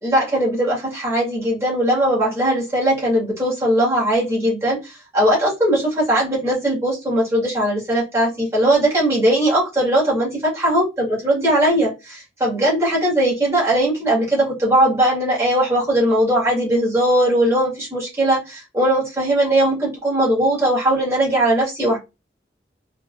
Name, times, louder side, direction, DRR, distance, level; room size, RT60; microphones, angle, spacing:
voice 1, 0.0-22.0, right 1 dB, 15° right, -6 dB, 2.0 m, -19 dB
3.4 x 3.1 x 2.6 m, 0.25 s
head